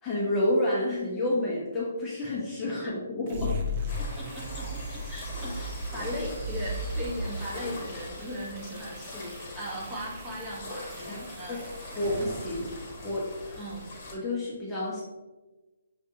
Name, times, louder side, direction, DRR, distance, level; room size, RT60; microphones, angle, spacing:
voice 1, 0.0-3.6 11.1-11.2 11.5-11.6 11.9-13.7 14.1-15.0, left 1 dB, 15° left, -7 dB, 0.7 m, -29 dB
sound 1, 3.3-13.2, left 1 dB, 35° right, 0.6 m, -37 dB
sound 2, 3.9-14.1, left 2 dB, 30° left, 1.1 m, -42 dB
voice 2, 4.0-11.7 13.6-13.9, equal, 10° right, -6 dB, 1.0 m, -38 dB
5.8 x 2.4 x 2.7 m, 1.2 s
hypercardioid pair, 155°, 0 cm